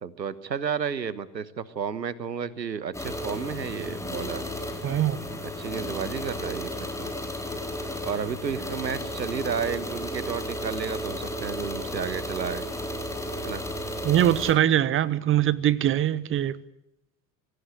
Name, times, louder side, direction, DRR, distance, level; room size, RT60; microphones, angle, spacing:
voice 1, 0.0-4.4 5.6-7.1 8.0-12.6 13.4-13.6, right 7 dB, 80° right, 1.4 m, -32 dB
sound 1, 2.9-14.5, left 1 dB, 5° left, 3.8 m, -34 dB
voice 2, 4.8-5.2 14.0-16.6, right 11 dB, 25° right, 1.0 m, -22 dB
24.5 x 17.5 x 8.1 m
figure-of-eight pair, 80°, 50 cm